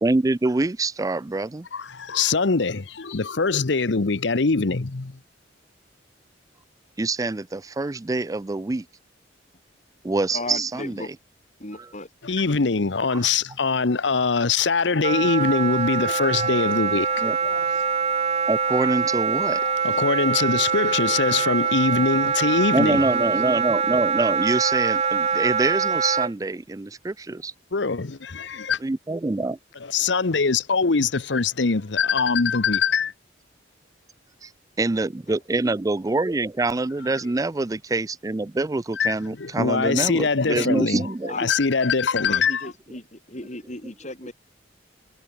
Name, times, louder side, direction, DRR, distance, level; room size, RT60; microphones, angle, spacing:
voice 1, 0.0-1.7 7.0-8.9 10.0-11.1 13.1-13.2 17.2-17.4 18.5-19.6 22.7-27.5 28.8-29.6 34.8-41.5, right 2 dB, 20° right, 0.4 m, -25 dB
voice 2, 1.7-5.2 12.2-17.6 19.6-23.3 27.7-28.8 29.8-33.1 39.0-41.0 41.4-42.7, left 4 dB, 70° left, 0.9 m, -23 dB
voice 3, 10.3-11.1 11.6-12.1 41.3-41.5 42.2-44.3, left 2 dB, 40° left, 6.8 m, -36 dB
Wind instrument woodwind instrument, 15.0-26.3, right 6 dB, 35° right, 1.1 m, -24 dB
head